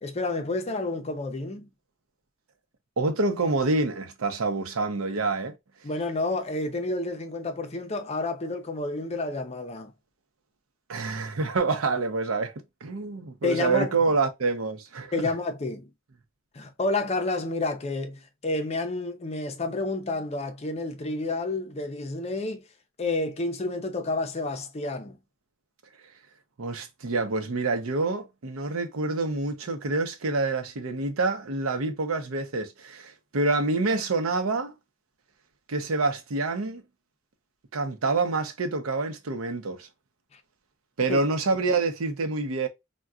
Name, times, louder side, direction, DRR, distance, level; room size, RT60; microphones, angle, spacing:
voice 1, 0.0-1.7 5.8-9.9 13.4-14.0 15.1-15.9 16.5-22.6 23.0-25.2 41.1-41.2, left 2 dB, 30° left, 0.5 m, -30 dB
voice 2, 3.0-5.5 10.9-12.5 12.8-15.3 26.6-34.7 35.7-36.8 37.7-39.9 41.0-42.7, right 3 dB, 90° right, 0.7 m, -27 dB
3.7 x 2.2 x 2.3 m
head